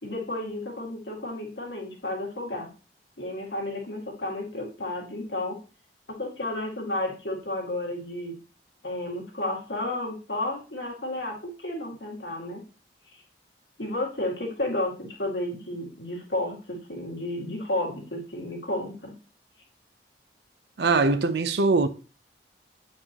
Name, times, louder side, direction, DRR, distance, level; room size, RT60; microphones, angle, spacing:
voice 1, 0.0-2.7 3.2-5.6 6.1-8.4 8.8-12.6 13.1-13.2 13.8-19.1, left 1 dB, 75° left, 1.9 m, -32 dB
voice 2, 20.8-21.9, right 3 dB, 70° right, 0.5 m, -22 dB
8.3 x 4.5 x 2.9 m
head